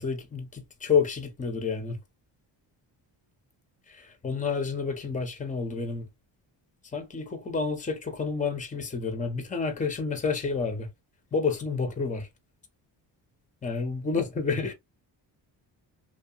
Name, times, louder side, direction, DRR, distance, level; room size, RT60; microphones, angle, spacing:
voice 1, 0.0-2.0 3.9-6.1 6.9-10.9 11.3-12.3 13.6-14.7, left 5 dB, 15° left, 0.7 m, -29 dB
2.7 x 2.3 x 2.3 m
cardioid pair, 70°, 48 cm